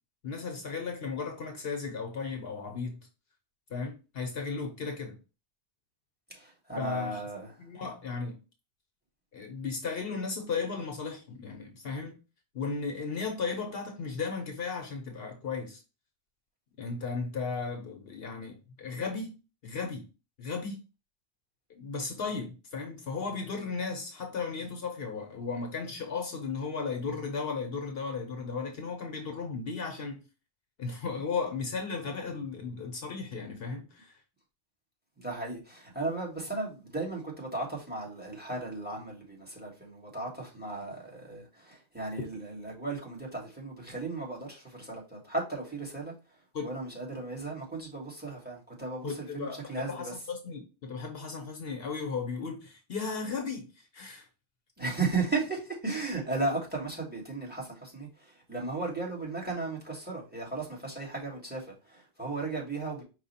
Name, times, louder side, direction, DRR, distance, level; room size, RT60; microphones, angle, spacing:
voice 1, 0.2-3.0 3.7-5.2 6.8-7.2 7.6-8.4 9.3-12.1 12.5-15.8 16.8-19.4 19.6-20.1 20.4-20.8 21.7-30.2 30.8-34.1 46.5-46.7 49.0-54.3, left 4 dB, 65° left, 1.0 m, -35 dB
voice 2, 6.3-7.5 35.2-46.1 46.6-50.2 54.8-63.0, right 3 dB, 10° right, 1.4 m, -35 dB
4.8 x 2.4 x 4.1 m
omnidirectional pair, 1.1 m